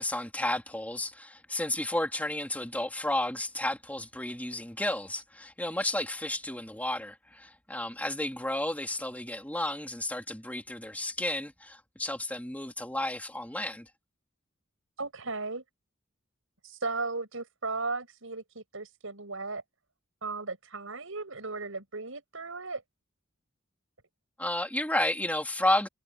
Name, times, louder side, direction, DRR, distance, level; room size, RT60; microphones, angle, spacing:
voice 1, 0.0-13.9 24.4-25.9, left 1 dB, 10° left, 2.7 m, -32 dB
voice 2, 15.0-15.6 16.6-19.6 20.2-22.8, right 3 dB, 75° right, 6.5 m, -36 dB
head